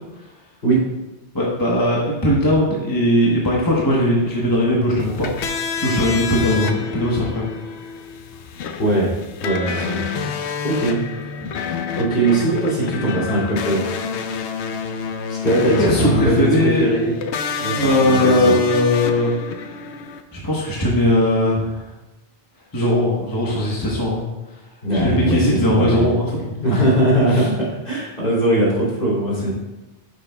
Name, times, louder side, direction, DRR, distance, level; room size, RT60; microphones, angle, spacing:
voice 1, 1.3-7.5 11.4-11.5 15.8-16.9 17.8-19.3 20.3-21.8 22.7-24.3 24.9-26.8 27.2-27.5 29.4-29.5, left 1 dB, 20° left, -4 dB, 1.1 m, -19 dB
sound 1, 5.0-20.2, left 5 dB, 85° left, 0.9 m, -28 dB
voice 2, 8.8-9.1 9.4-10.3 10.6-11.0 12.0-13.8 15.3-17.1 17.6-18.6 24.8-26.1 26.6-29.5, right 1 dB, 55° left, -7 dB, 3.0 m, -20 dB
9.5 x 6.4 x 2.3 m, 1.0 s
omnidirectional pair, 1.1 m